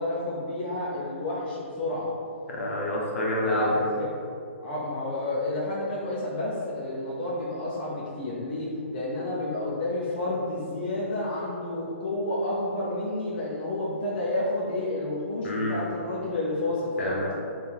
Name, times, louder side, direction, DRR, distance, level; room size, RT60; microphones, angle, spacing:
voice 1, 0.0-2.1 3.4-4.1 4.6-17.2, left 1 dB, 45° left, -6 dB, 0.8 m, -30 dB
voice 2, 2.5-3.8 15.4-15.8 17.0-17.3, left 1 dB, 70° left, -3 dB, 1.1 m, -28 dB
3.6 x 2.8 x 4.5 m, 2.5 s
hypercardioid pair, 140°, 7 cm